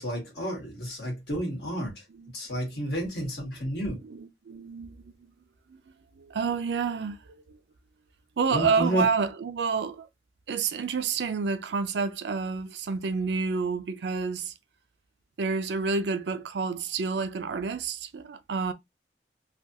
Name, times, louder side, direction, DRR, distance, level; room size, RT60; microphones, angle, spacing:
voice 1, 0.0-1.9 2.3-4.0 8.5-9.0, equal, 70° left, 1.6 m, -31 dB
voice 2, 4.0-5.3 5.7-7.2 7.5-7.6 8.4-10.1 10.5-14.5 15.4-18.7, right 5 dB, 75° right, 0.4 m, -29 dB
3.2 x 2.3 x 2.7 m
head